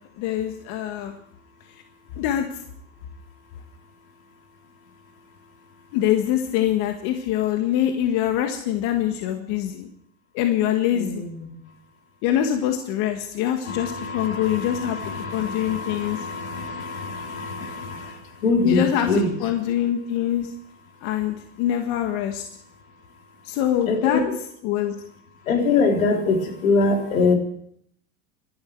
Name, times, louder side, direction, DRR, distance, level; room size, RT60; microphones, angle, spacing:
voice 1, 0.2-1.1 2.2-2.5 5.9-9.9 10.3-11.3 12.2-16.2 18.6-19.1 19.4-20.5 21.0-22.4 23.5-24.2 24.6-25.0, left 11 dB, 55° left, 5 dB, 1.8 m, -24 dB
voice 2, 10.9-11.6 13.6-19.3 23.9-24.2 25.4-27.3, left 3 dB, 80° left, 3 dB, 3.7 m, -24 dB
26.5 x 11.5 x 4.7 m, 0.67 s
hypercardioid pair, 110°, 40 cm